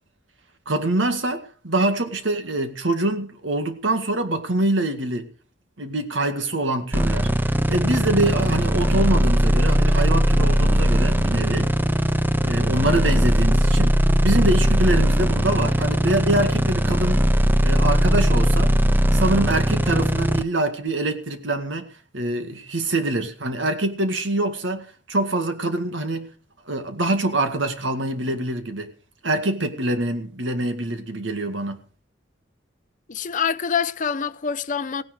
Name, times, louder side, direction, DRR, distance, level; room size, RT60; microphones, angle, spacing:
voice 1, 0.7-5.3 5.8-7.3 7.7-11.7 12.4-17.2 17.6-18.7 19.1-21.9 22.1-26.3 26.7-28.9 29.2-31.8, right 2 dB, 80° right, 2.0 m, -24 dB
sound 1, 6.9-20.4, equal, 10° right, 0.6 m, -19 dB
voice 2, 33.1-35.0, left 6 dB, 45° left, 0.7 m, -25 dB
16.5 x 10.0 x 5.0 m
head